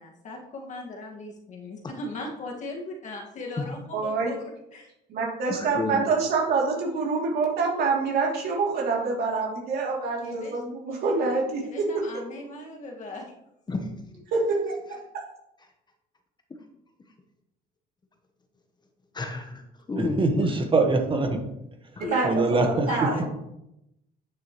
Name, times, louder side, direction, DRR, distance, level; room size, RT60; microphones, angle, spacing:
voice 1, 0.0-4.4 4.7-4.9 10.2-10.6 11.2-11.4 11.6-13.2 22.0-22.3 22.9-23.2, left 2 dB, 45° left, 0 dB, 1.9 m, -37 dB
voice 2, 3.9-4.3 5.1-12.0 14.3-15.2 22.0-22.3 22.9-23.3, right 4 dB, 70° right, -1 dB, 2.8 m, -26 dB
voice 3, 5.5-6.0 13.7-14.2 19.1-19.6 19.9-20.5 22.0-22.1, left 3 dB, 25° left, 5 dB, 1.1 m, -31 dB
voice 4, 20.0-21.4 22.2-22.9, right 3 dB, 30° right, 5 dB, 1.4 m, -23 dB
9.1 x 7.3 x 3.1 m, 0.83 s
cardioid pair, 110°, 17 cm